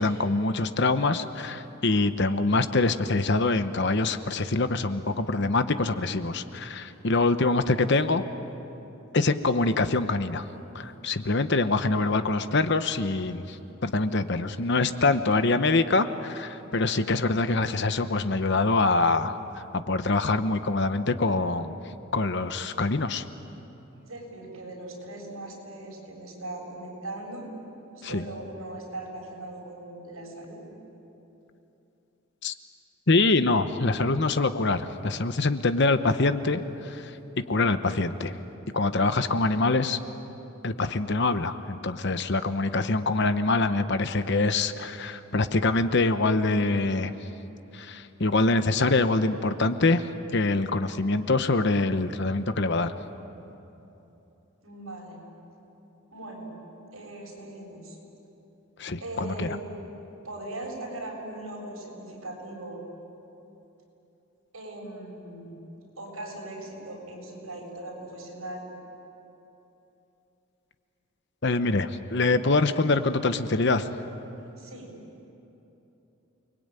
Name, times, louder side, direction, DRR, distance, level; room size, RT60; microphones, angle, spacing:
voice 1, 0.0-8.2 9.1-10.4 10.7-13.6 13.8-19.4 19.7-21.8 22.1-23.2 28.0-28.2 32.4-32.5 33.1-37.2 37.5-38.3 38.7-40.0 40.6-47.1 47.7-52.9 58.8-59.5 71.4-73.9, left 3 dB, 55° left, 10 dB, 1.0 m, -24 dB
voice 2, 23.9-27.5 28.0-30.6 54.6-55.2 56.1-56.5 56.9-58.0 59.0-59.6 60.2-62.8 64.5-65.5 66.0-68.7 74.6-74.9, right 2 dB, 75° right, -1 dB, 7.4 m, -39 dB
29.0 x 21.5 x 9.1 m, 3.0 s
head